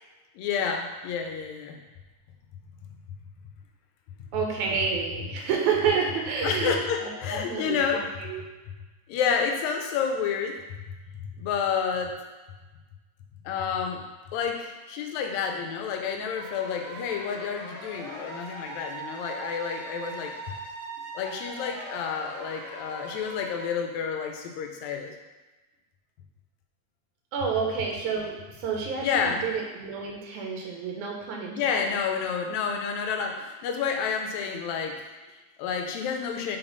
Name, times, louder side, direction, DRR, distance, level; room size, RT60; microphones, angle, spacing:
voice 1, 0.4-1.8 6.4-8.0 9.1-10.6 11.2-12.2 13.5-14.0 14.3-20.5 21.1-25.2 29.0-29.4 31.6-36.6, left 6 dB, 80° left, 4 dB, 2.0 m, -29 dB
voice 2, 4.3-8.4 27.3-31.9, right 6 dB, 90° right, 0 dB, 2.3 m, -29 dB
sound 1, 16.3-23.7, right 2 dB, 55° left, 1.2 m, -40 dB
6.0 x 4.2 x 3.9 m, 1.2 s
omnidirectional pair, 3.3 m